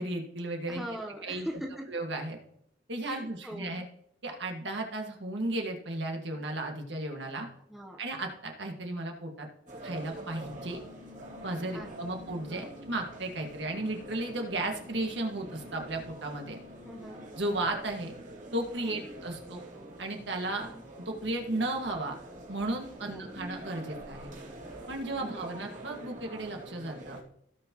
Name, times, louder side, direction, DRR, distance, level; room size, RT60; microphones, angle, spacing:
voice 1, 0.0-0.8 1.2-1.5 1.9-2.4 2.9-3.9 4.2-7.5 8.0-9.5 9.8-10.8 11.4-16.6 17.4-18.1 18.5-19.6 20.0-22.2 22.5-24.3 24.9-27.2, right 2 dB, 65° right, 2 dB, 1.8 m, -34 dB
voice 2, 0.7-1.8 3.0-3.7 7.7-8.0 11.7-11.9 12.5-12.7 16.8-17.2 18.8-19.0 20.6-20.8 23.0-23.2 25.2-25.4, equal, ahead, 0 dB, 1.0 m, -41 dB
sound 1, 9.7-27.2, right 1 dB, 40° right, 2.8 m, -46 dB
sound 2, 10.1-17.3, left 6 dB, 35° left, 2.3 m, -54 dB
17.0 x 6.0 x 3.0 m, 0.72 s
head